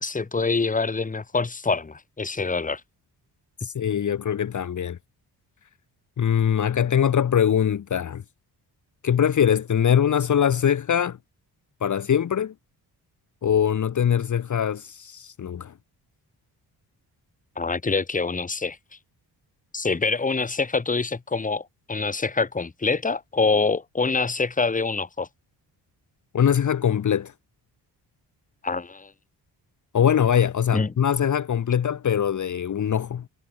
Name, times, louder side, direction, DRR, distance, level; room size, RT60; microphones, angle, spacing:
voice 1, 0.0-2.8 17.6-18.8 19.7-25.3 28.6-29.1 30.7-30.9, left 4 dB, 20° left, 1.8 m, -25 dB
voice 2, 3.6-5.0 6.2-8.2 9.0-11.2 11.8-12.5 13.4-15.7 26.3-27.3 29.9-33.3, left 8 dB, 45° left, 1.3 m, -22 dB
cardioid pair, 130°, 41 cm